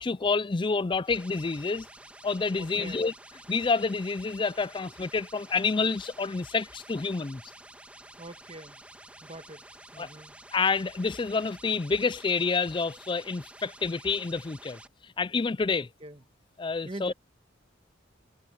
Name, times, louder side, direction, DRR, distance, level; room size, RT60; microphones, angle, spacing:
voice 1, 0.0-1.9 2.2-3.1 3.5-7.4 10.0-10.1 10.5-14.8 15.2-15.9 16.6-17.1, left 4 dB, 25° left, 0.4 m, -28 dB
sound 1, 1.0-14.9, right 1 dB, 5° right, 2.5 m, -50 dB
voice 2, 2.6-3.1 8.2-8.8 9.2-10.4 15.7-16.2 16.8-17.1, right 2 dB, 30° right, 1.4 m, -44 dB
head